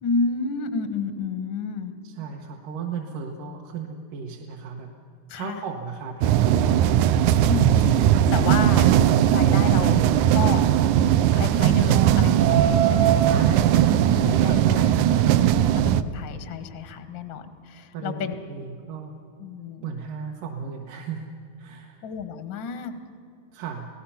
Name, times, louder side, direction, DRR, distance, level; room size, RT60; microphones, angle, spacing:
voice 1, 0.0-1.9 5.3-5.6 7.5-8.9 9.3-10.0 10.3-10.6 11.3-13.2 14.1-14.8 15.7-18.4 19.4-19.9 22.0-22.9, left 5 dB, 80° left, 9 dB, 1.0 m, -31 dB
voice 2, 2.0-4.9 5.3-6.8 13.3-15.3 17.9-19.1 19.8-21.3 21.6-22.1 23.5-23.9, right 5 dB, 70° right, 0 dB, 2.7 m, -35 dB
sound 1, 6.2-16.0, right 11 dB, 85° right, 1.7 m, -19 dB
28.5 x 18.0 x 5.8 m, 2.6 s
omnidirectional pair, 4.2 m